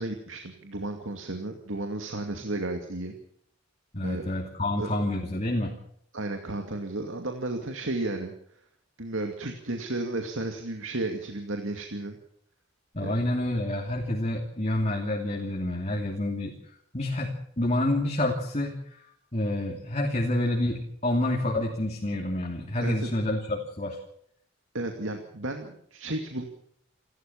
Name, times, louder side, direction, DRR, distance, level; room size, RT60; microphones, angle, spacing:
voice 1, 0.0-3.2 4.0-4.2 4.8-4.9 6.1-8.3 9.0-12.2 13.0-13.3 22.8-23.1 24.7-26.4, right 2 dB, 70° right, 4 dB, 2.4 m, -33 dB
voice 2, 3.9-5.7 12.9-16.5 16.9-19.0 19.3-24.0, left 1 dB, 35° left, 1 dB, 2.7 m, -28 dB
28.5 x 13.0 x 7.2 m, 0.68 s
head